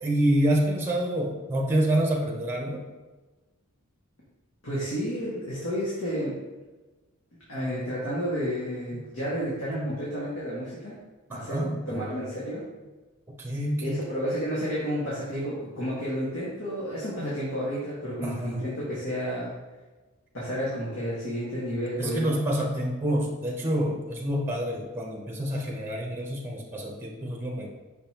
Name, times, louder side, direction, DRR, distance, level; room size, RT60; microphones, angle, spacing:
voice 1, 0.0-2.8 9.6-10.0 11.3-12.2 13.4-14.0 18.2-18.7 22.0-27.7, right 1 dB, 10° right, -1 dB, 0.8 m, -27 dB
voice 2, 4.6-6.4 7.5-11.0 11.3-12.6 13.8-19.5 20.3-22.4, equal, 65° left, -8 dB, 1.7 m, -31 dB
6.2 x 5.3 x 3.0 m, 1.2 s
head